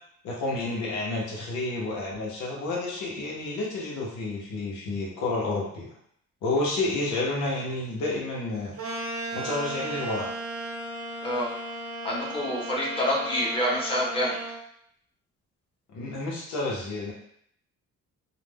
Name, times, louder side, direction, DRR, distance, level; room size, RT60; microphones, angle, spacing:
voice 1, 0.2-5.9 6.4-8.7 9.3-10.3 15.9-17.1, left 2 dB, 85° left, -3 dB, 0.8 m, -30 dB
sound 1, 8.8-14.6, right 1 dB, 50° right, 0.7 m, -35 dB
voice 2, 12.0-14.3, equal, 20° left, -4 dB, 0.9 m, -27 dB
2.5 x 2.1 x 3.3 m, 0.69 s
cardioid pair, 90°, 30 cm